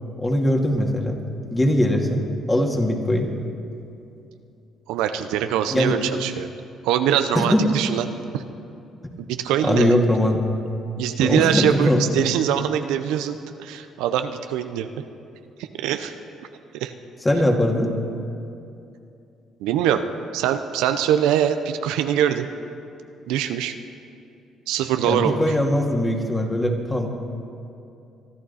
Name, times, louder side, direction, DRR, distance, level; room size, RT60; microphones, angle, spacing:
voice 1, 0.2-1.2 1.5-3.3 5.7-6.0 7.3-7.8 9.6-10.4 11.2-12.0 17.2-17.9 25.0-27.2, left 1 dB, 15° left, 1 dB, 2.3 m, -21 dB
voice 2, 4.9-6.5 6.8-8.1 8.3-8.4 9.3-9.9 11.0-14.9 15.6-16.1 16.7-16.9 19.6-20.0 20.3-22.5 23.3-23.8 24.7-25.4, right 10 dB, 85° right, 8 dB, 0.6 m, -23 dB
23.5 x 11.5 x 4.2 m, 2.7 s
supercardioid pair, 70°, 0 cm